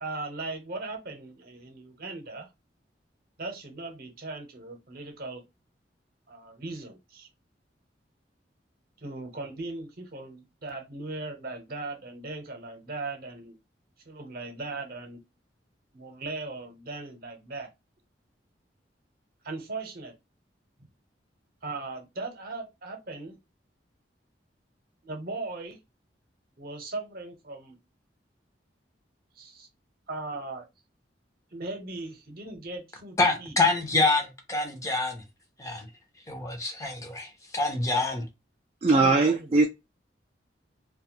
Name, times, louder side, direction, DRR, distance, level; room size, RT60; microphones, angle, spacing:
voice 1, 0.0-2.5 3.4-5.4 6.3-7.3 9.0-13.6 14.1-15.2 15.9-17.7 19.4-20.1 21.6-23.4 25.0-25.8 26.6-27.8 29.4-29.7 30.1-30.6 31.5-33.5 38.9-39.5, right 3 dB, 55° right, 0.8 m, -38 dB
voice 2, 33.2-35.2 35.6-35.9 36.3-38.3, left 3 dB, 20° left, 0.5 m, -26 dB
voice 3, 38.8-39.7, right 3 dB, 35° right, 0.3 m, -20 dB
2.5 x 2.2 x 2.9 m
head